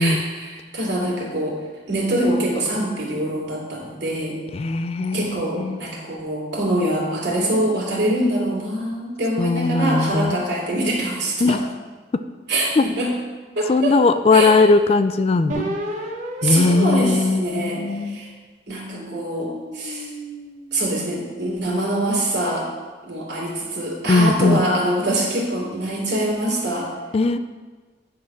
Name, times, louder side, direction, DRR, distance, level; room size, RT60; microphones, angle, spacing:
voice 1, 0.0-1.6 1.9-4.4 5.1-11.6 12.5-13.1 13.6-14.0 14.3-14.6 16.4-18.3 18.7-20.1 20.7-22.7 23.0-26.9, right 1 dB, 75° right, -4 dB, 2.5 m, -24 dB
voice 2, 4.5-5.8 9.4-10.4 11.4-11.6 12.8-12.9 13.7-15.8 16.4-18.2 24.1-24.6 27.1-27.4, left 3 dB, 35° left, 10 dB, 0.3 m, -19 dB
sound 1, 15.5-18.2 18.8-21.3, right 1 dB, 45° right, 1.1 m, -34 dB
10.0 x 4.0 x 6.0 m, 1.4 s
head